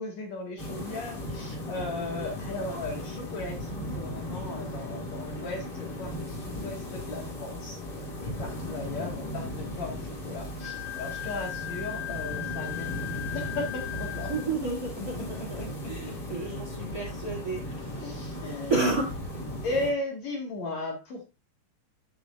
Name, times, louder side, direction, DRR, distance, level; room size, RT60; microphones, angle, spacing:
voice 1, 0.0-7.8 8.2-14.3 15.0-15.7 18.0-18.7 19.6-21.2, left 2 dB, 55° left, 2.7 m, -36 dB
sound 1, 0.6-19.9, left 1 dB, 30° left, 2.7 m, -37 dB
Wind instrument woodwind instrument, 10.6-14.5, left 14 dB, 75° left, 1.5 m, -37 dB
voice 2, 14.3-18.4 18.7-19.5, right 3 dB, 25° right, 2.6 m, -32 dB
12.5 x 6.1 x 2.4 m
omnidirectional pair, 4.2 m